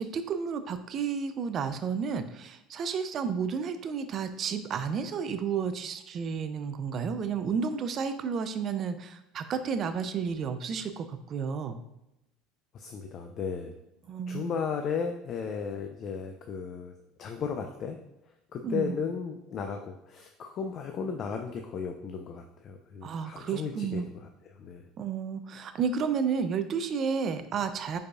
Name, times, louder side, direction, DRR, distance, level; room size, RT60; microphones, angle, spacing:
voice 1, 0.0-11.8 14.1-14.6 18.6-19.0 23.0-24.1 25.0-28.0, right 6 dB, 35° right, 10 dB, 0.4 m, -31 dB
voice 2, 12.7-13.7 14.3-16.9 17.2-18.0 18.5-24.8, left 6 dB, 35° left, 4 dB, 0.4 m, -35 dB
4.7 x 4.7 x 2.4 m, 0.89 s
cardioid pair, 150°, 0 cm